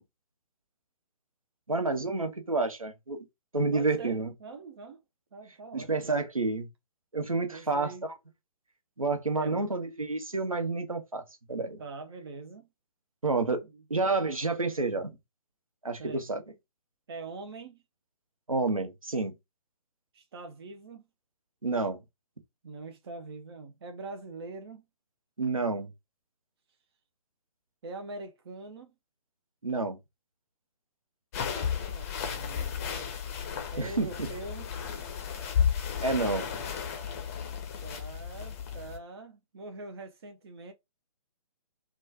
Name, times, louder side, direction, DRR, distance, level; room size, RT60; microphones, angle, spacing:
voice 1, 1.7-3.2 3.5-4.3 5.7-6.7 7.1-8.1 9.0-11.2 11.5-11.8 13.2-13.6 13.9-15.1 15.8-16.4 18.5-19.3 21.6-22.0 25.4-25.9 29.6-30.0 33.8-34.3 36.0-36.5, right 3 dB, 80° right, 0.9 m, -29 dB
voice 2, 3.7-5.0 5.3-6.1 7.5-8.1 9.3-9.7 11.8-12.7 13.6-13.8 16.0-16.4 17.1-17.8 20.1-21.0 22.6-24.8 27.8-28.9 31.7-33.1 33.7-34.7 37.8-40.7, right 3 dB, 50° right, 0.5 m, -43 dB
sound 1, 31.3-39.0, left 7 dB, 25° left, 0.5 m, -33 dB
3.1 x 2.2 x 3.2 m
figure-of-eight pair, 130°, 17 cm